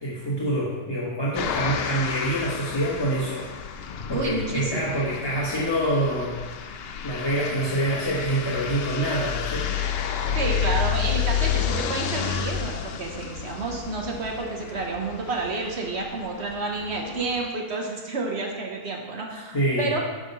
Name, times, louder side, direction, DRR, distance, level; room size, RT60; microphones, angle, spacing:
voice 1, 0.0-3.5 4.1-9.7 19.5-19.9, right 1 dB, 20° left, -6 dB, 1.1 m, -26 dB
sound 1, 1.3-17.5, left 8 dB, 90° left, 0.5 m, -30 dB
voice 2, 4.1-5.0 10.3-20.0, right 3 dB, 50° right, 0 dB, 1.2 m, -30 dB
8.4 x 3.8 x 5.4 m, 1.3 s
omnidirectional pair, 1.6 m